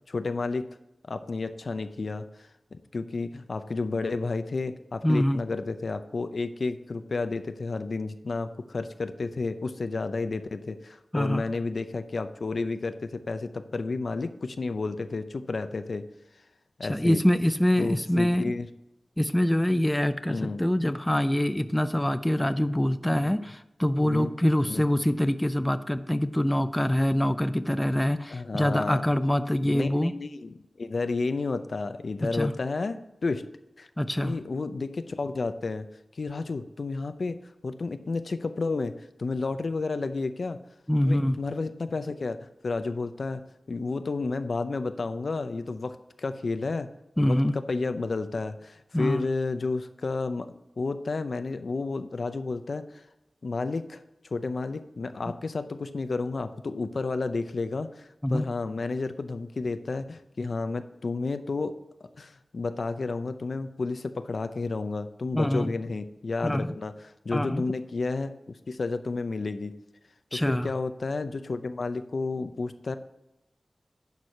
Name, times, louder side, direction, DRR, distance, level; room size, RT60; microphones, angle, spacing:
voice 1, 0.1-0.6 1.1-2.2 2.7-16.0 16.8-17.2 17.8-18.7 20.3-20.6 23.2-23.5 24.0-24.3 24.7-24.8 28.3-29.0 29.6-33.4 33.8-33.9 34.2-35.9 36.1-37.4 37.6-38.9 39.2-40.6 41.0-43.4 43.7-46.9 47.2-50.5 50.8-53.1 53.4-54.0 54.3-61.8 62.2-66.9 67.2-69.8 70.3-73.0, left 3 dB, 70° left, 10 dB, 0.6 m, -31 dB
voice 2, 5.0-5.4 11.1-11.4 16.8-18.5 19.2-30.1 32.3-32.5 34.0-34.4 40.9-41.4 47.2-47.5 48.9-49.3 55.3-55.4 58.2-58.5 65.3-65.7 66.4-66.8 67.3-67.6 70.3-70.7, left 1 dB, 10° left, 11 dB, 0.4 m, -25 dB
10.5 x 4.7 x 5.6 m, 0.89 s
wide cardioid pair, 75°, 0 cm